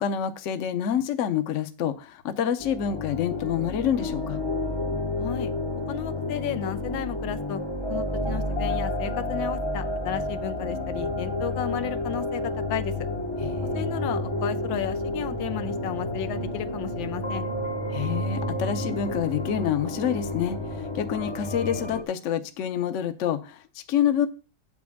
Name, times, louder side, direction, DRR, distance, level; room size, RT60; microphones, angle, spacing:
voice 1, 0.0-4.4 13.4-13.8 17.9-24.3, left 9 dB, 55° left, 9 dB, 0.9 m, -27 dB
sound 1, 2.6-22.0, left 1 dB, 25° left, 0.6 m, -30 dB
voice 2, 5.2-5.5 5.9-7.6 7.9-12.9 13.7-17.4, left 10 dB, 90° left, 10 dB, 1.5 m, -33 dB
8.6 x 4.3 x 7.2 m, 0.35 s
omnidirectional pair, 2.0 m